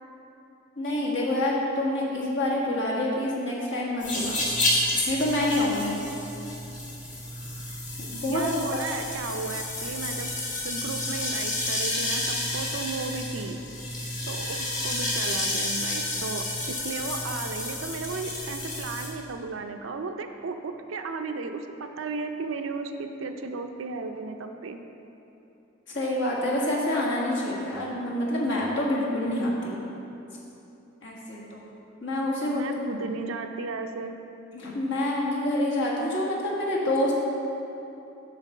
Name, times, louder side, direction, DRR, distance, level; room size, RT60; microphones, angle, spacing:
voice 1, 0.8-4.6 5.1-6.0 8.0-8.5 25.9-29.8 31.0-31.7 32.0-32.7 34.5-37.2, left 1 dB, 60° left, -4 dB, 1.5 m, -27 dB
sound 1, 4.0-19.1, left 1 dB, 40° left, 1.6 m, -30 dB
voice 2, 8.2-10.3 10.6-13.6 14.3-24.8 32.5-34.1, right 4 dB, 80° right, 6 dB, 0.5 m, -34 dB
7.4 x 4.6 x 6.4 m, 2.9 s
head